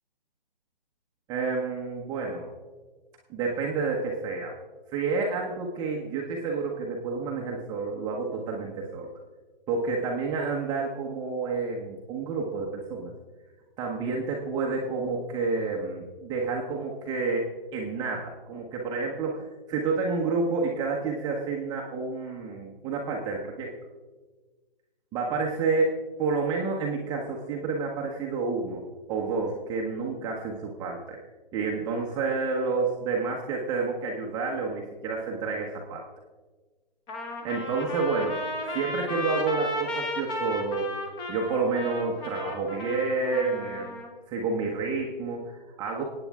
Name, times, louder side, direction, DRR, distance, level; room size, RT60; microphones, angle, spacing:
voice 1, 1.3-2.5 3.3-4.5 4.9-9.1 9.7-13.1 13.8-23.7 25.1-28.8 29.1-31.2 31.5-36.0 37.4-38.4 38.7-40.9 41.3-44.0 44.3-46.0, right 4 dB, 15° right, -1 dB, 1.2 m, -29 dB
Trumpet, 37.1-44.1, left 1 dB, 15° left, 1.5 m, -34 dB
27.0 x 9.0 x 3.6 m, 1.3 s
figure-of-eight pair, 145°, 29 cm